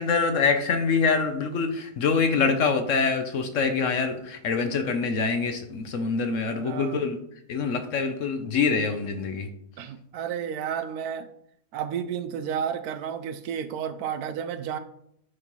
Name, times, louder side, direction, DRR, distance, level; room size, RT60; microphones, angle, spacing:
voice 1, 0.0-7.2 7.5-9.5, left 5 dB, 60° left, 7 dB, 0.9 m, -25 dB
voice 2, 6.5-7.0 9.8-11.3 11.7-14.8, right 8 dB, 75° right, 10 dB, 1.1 m, -32 dB
11.0 x 4.1 x 3.0 m, 0.72 s
omnidirectional pair, 1.7 m